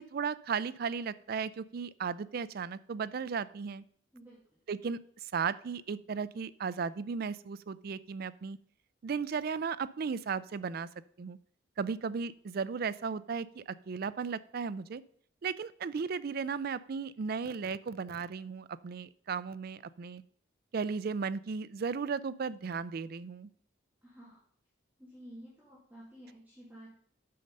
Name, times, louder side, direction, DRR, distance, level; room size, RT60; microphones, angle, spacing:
voice 1, 0.0-3.8 4.7-5.0 5.3-8.6 9.0-10.9 11.2-11.4 11.8-15.0 15.4-20.2 20.7-23.5, right 5 dB, 50° right, 16 dB, 0.4 m, -35 dB
voice 2, 4.1-4.6 24.0-24.4 25.0-27.0, equal, 10° right, -7 dB, 2.3 m, -52 dB
9.3 x 6.6 x 5.3 m, 0.62 s
head